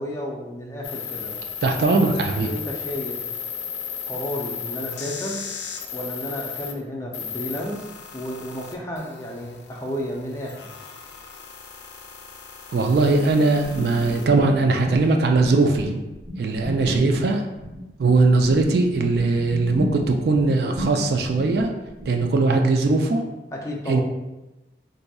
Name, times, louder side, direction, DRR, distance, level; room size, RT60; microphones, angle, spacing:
voice 1, 0.0-1.4 2.4-3.2 4.1-5.4 5.9-7.9 8.1-10.6 23.5-24.0, equal, 15° left, -2 dB, 0.4 m, -32 dB
sound 1, 0.8-6.7 7.1-14.3, left 7 dB, 70° left, 0.4 m, -35 dB
voice 2, 1.6-2.5 12.7-16.0 16.4-17.4 18.0-21.7 22.1-23.2 23.9-24.0, right 3 dB, 60° right, 4 dB, 0.3 m, -20 dB
sound 2, 13.6-15.0 15.3-22.2, equal, 75° right, 1.5 m, -33 dB
4.0 x 2.6 x 2.3 m, 1.0 s
head